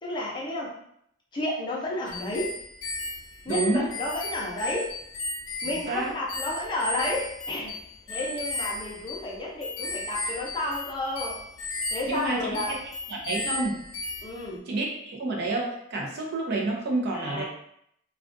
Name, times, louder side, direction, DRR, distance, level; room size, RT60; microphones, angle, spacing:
voice 1, 0.0-0.7 1.3-2.6 3.4-4.9 5.6-7.8 8.1-11.4 11.9-12.8 14.2-14.7 17.1-17.4, left 1 dB, 20° left, -4 dB, 0.6 m, -31 dB
sound 1, 2.1-14.5, left 2 dB, 80° left, 0.4 m, -35 dB
voice 2, 3.5-3.9 5.6-6.1 12.1-12.6 13.1-13.8 14.7-17.4, right 2 dB, 55° right, -1 dB, 0.6 m, -29 dB
2.4 x 2.3 x 2.5 m, 0.72 s
head